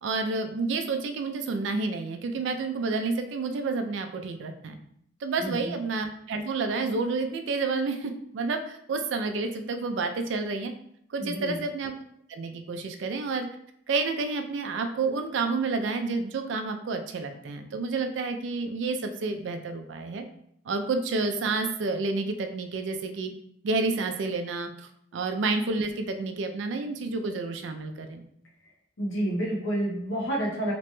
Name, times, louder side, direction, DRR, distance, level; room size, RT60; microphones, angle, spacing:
voice 1, 0.0-4.8 5.2-10.7 11.1-11.9 12.3-13.5 13.9-20.2 20.7-23.3 23.6-24.7 25.1-28.2, right 3 dB, 70° right, 7 dB, 0.3 m, -29 dB
voice 2, 5.4-5.7 11.2-11.6 29.0-30.7, right 1 dB, 80° left, -3 dB, 0.9 m, -29 dB
2.9 x 2.2 x 2.9 m, 0.70 s
head